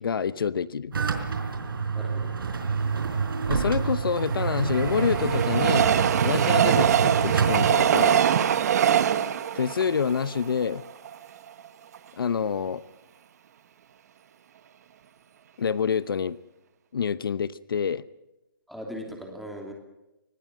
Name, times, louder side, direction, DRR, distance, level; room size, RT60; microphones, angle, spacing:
voice 1, 0.0-0.9 3.5-5.9 6.2-6.9 7.2-8.2 9.5-10.8 12.2-12.8 15.6-16.4 16.9-18.0, left 6 dB, 75° left, 17 dB, 0.8 m, -27 dB
sound 1, 0.9-7.7, right 5 dB, 75° right, 4.6 m, -27 dB
voice 2, 1.9-2.3 6.8-7.0 8.9-9.1 18.7-19.7, equal, ahead, 1 dB, 2.9 m, -37 dB
Train, 3.9-11.1 11.6-11.7 11.9-12.0, right 9 dB, 45° right, 1.3 m, -23 dB
25.0 x 19.5 x 6.2 m, 0.97 s
hypercardioid pair, 165°, 12 cm